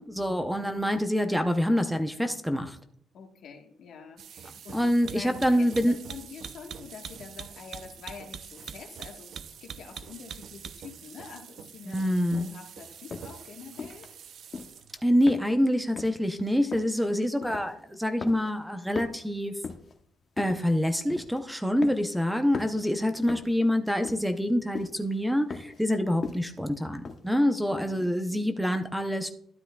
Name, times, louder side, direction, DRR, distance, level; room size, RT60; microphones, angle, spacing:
voice 1, 0.0-2.8 4.7-6.0 11.9-12.5 15.0-19.5 20.4-29.3, equal, 5° right, 7 dB, 0.7 m, -26 dB
voice 2, 3.1-14.1 27.3-28.2, left 6 dB, 70° left, 3 dB, 1.4 m, -46 dB
sound 1, 4.2-15.0, right 8 dB, 65° right, 0.4 m, -44 dB
sound 2, 12.3-12.6 13.1-13.4 13.8-14.1 14.5-14.8 15.3-15.7 16.0-16.2 16.7-17.0 17.4-17.9 18.2-18.6 18.9-19.9 20.4-20.7 21.1-21.4 21.8-22.2 22.5-22.8 23.3-23.6 24.0-24.5 24.7-25.0 25.5-25.8 26.2-26.6 27.0-27.2, left 5 dB, 45° left, 0.9 m, -38 dB
12.5 x 8.0 x 2.3 m, 0.67 s
cardioid pair, 90°, 0 cm